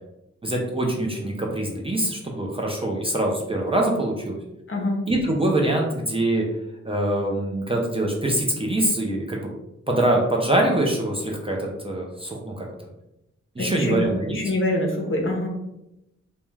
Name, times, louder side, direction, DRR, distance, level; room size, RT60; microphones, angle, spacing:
voice 1, 0.4-4.4 5.1-6.5 6.8-9.4 9.9-12.7 13.6-14.4, right 1 dB, 20° right, -1 dB, 0.4 m, -24 dB
voice 2, 13.6-14.0 14.3-15.5, left 1 dB, 45° left, 0 dB, 0.7 m, -25 dB
2.3 x 2.1 x 3.1 m, 0.88 s
wide cardioid pair, 80°, 29 cm